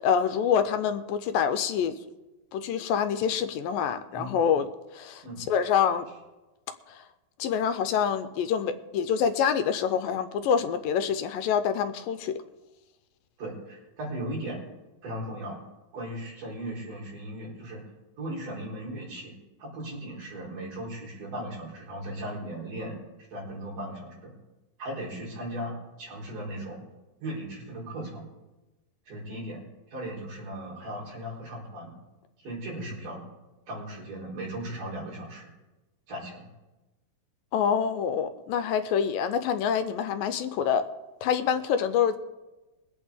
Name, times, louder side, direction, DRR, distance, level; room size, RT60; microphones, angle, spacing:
voice 1, 0.0-2.0 2.5-6.1 6.9-7.0 7.4-12.4 37.5-40.9 41.2-42.2, left 7 dB, 80° left, 9 dB, 2.4 m, -26 dB
voice 2, 13.4-14.6 15.0-15.6 15.9-17.8 18.2-19.3 19.6-23.0 23.3-24.3 24.8-26.8 27.2-28.2 29.1-29.6 29.9-31.9 32.4-33.2 33.7-35.5 36.1-36.5, right 1 dB, 65° right, -5 dB, 5.8 m, -37 dB
22.5 x 8.7 x 3.7 m, 1.1 s
omnidirectional pair, 4.1 m